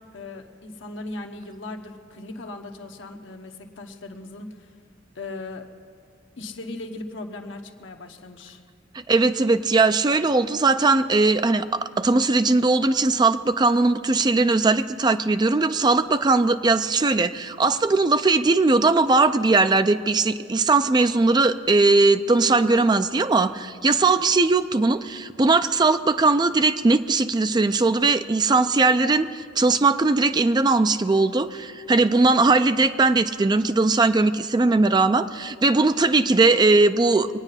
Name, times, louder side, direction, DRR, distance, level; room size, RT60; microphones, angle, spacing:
voice 1, 0.0-4.7 5.1-5.7 6.4-8.6, left 2 dB, 75° left, 4 dB, 1.0 m, -38 dB
voice 2, 9.1-37.3, right 3 dB, 20° right, 11 dB, 0.4 m, -19 dB
23.5 x 8.9 x 5.6 m, 2.3 s
head